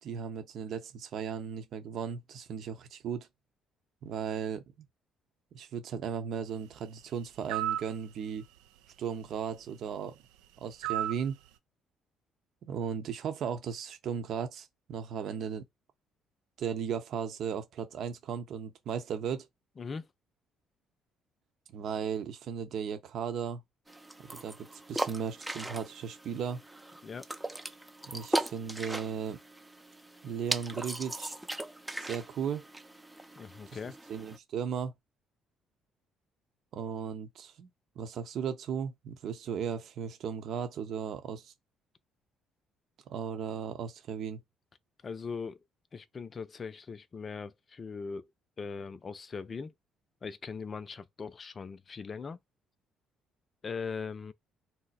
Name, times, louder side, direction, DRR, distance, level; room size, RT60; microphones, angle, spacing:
voice 1, 0.0-3.3 4.0-4.6 5.5-8.4 9.0-10.2 10.6-11.4 12.6-15.6 16.6-19.5 21.7-23.6 24.2-26.6 28.0-29.4 30.2-31.3 32.0-32.6 34.1-34.9 36.7-37.7 38.0-41.5 43.1-44.4, right 7 dB, 65° right, 0.8 m, -36 dB
sound 1, 7.5-7.9 10.8-11.2, right 12 dB, 85° right, 0.4 m, -31 dB
voice 2, 19.8-20.1 27.0-27.3 33.4-34.0 45.0-45.6 45.9-48.3 48.6-49.7 50.2-52.4 53.6-54.3, left 5 dB, 40° left, 0.5 m, -40 dB
sound 2, 23.9-34.4, right 1 dB, 10° right, 0.6 m, -39 dB
2.8 x 2.1 x 4.0 m
supercardioid pair, 65°, 0 cm